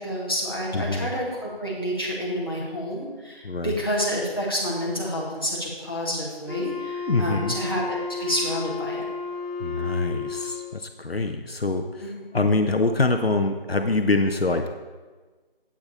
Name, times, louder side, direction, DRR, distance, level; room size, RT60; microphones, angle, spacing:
voice 1, 0.0-9.1 12.0-12.3, equal, 25° left, -6 dB, 1.6 m, -29 dB
voice 2, 0.7-1.1 3.4-3.8 7.1-7.6 9.6-14.7, left 3 dB, 75° left, 6 dB, 0.9 m, -25 dB
Wind instrument woodwind instrument, 6.5-10.8, left 5 dB, 55° right, 2.8 m, -32 dB
8.6 x 8.0 x 4.2 m, 1.3 s
figure-of-eight pair, 175°, 30 cm